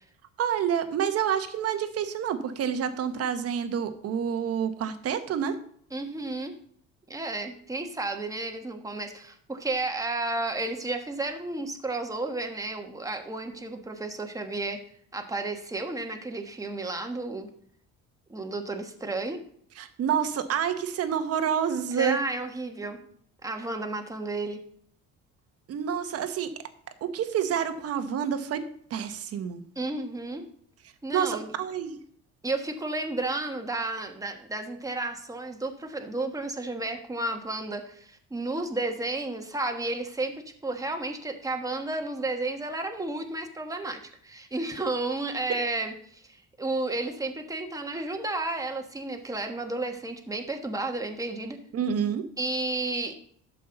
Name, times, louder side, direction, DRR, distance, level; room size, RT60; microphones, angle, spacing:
voice 1, 0.4-5.6 19.8-22.2 25.7-26.5 27.0-28.6 28.9-29.6 31.1-32.0 51.7-52.2, right 8 dB, 50° right, 9 dB, 1.1 m, -28 dB
voice 2, 5.9-6.5 7.1-14.8 15.1-17.5 18.3-19.4 21.9-23.0 23.4-24.6 29.7-30.5 31.0-31.5 32.4-40.3 40.6-51.6 52.4-53.1, right 2 dB, 10° right, 4 dB, 1.3 m, -32 dB
12.0 x 7.5 x 3.9 m, 0.62 s
cardioid pair, 130°, 31 cm